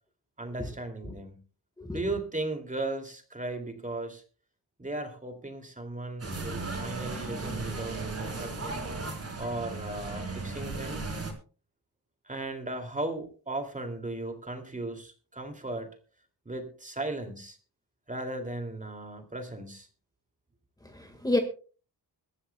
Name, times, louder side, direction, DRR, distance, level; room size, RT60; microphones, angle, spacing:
voice 1, 0.4-1.4 1.9-4.2 4.8-8.8 9.4-11.0 12.2-15.9 16.5-17.6 18.1-19.9, right 2 dB, 20° right, 5 dB, 2.7 m, -36 dB
sound 1, 6.2-11.3, right 3 dB, 35° right, 4.3 m, -36 dB
voice 2, 20.8-21.4, left 2 dB, 10° left, 4 dB, 1.7 m, -29 dB
23.0 x 13.0 x 2.3 m, 0.38 s
wide cardioid pair, 165°, 40 cm